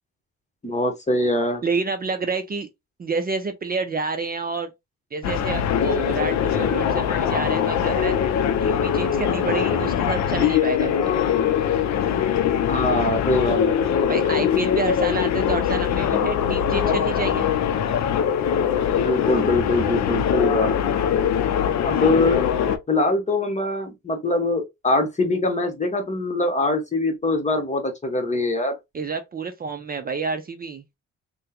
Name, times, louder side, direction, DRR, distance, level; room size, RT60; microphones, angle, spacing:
voice 1, 0.6-1.6 12.7-13.7 19.0-20.7 21.8-22.5 22.9-28.8, left 2 dB, 25° left, 1.0 m, -23 dB
voice 2, 1.6-2.7 3.0-4.7 5.1-8.2 8.6-11.2 14.1-17.5 28.9-30.8, right 4 dB, 30° right, 0.5 m, -28 dB
sound 1, 5.2-22.8, left 9 dB, 65° left, 0.5 m, -22 dB
3.5 x 2.2 x 2.8 m
cardioid pair, 90°, 30 cm